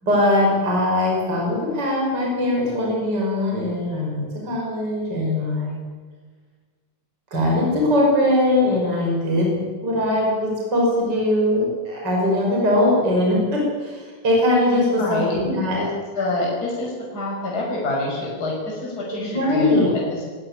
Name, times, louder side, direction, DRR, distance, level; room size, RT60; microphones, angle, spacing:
voice 1, 0.0-5.8 7.3-15.8 19.1-19.9, left 1 dB, 30° right, -2 dB, 6.5 m, -21 dB
voice 2, 15.0-15.9 16.1-20.2, left 2 dB, 25° left, -3 dB, 6.2 m, -26 dB
21.0 x 20.5 x 10.0 m, 1.5 s
omnidirectional pair, 3.9 m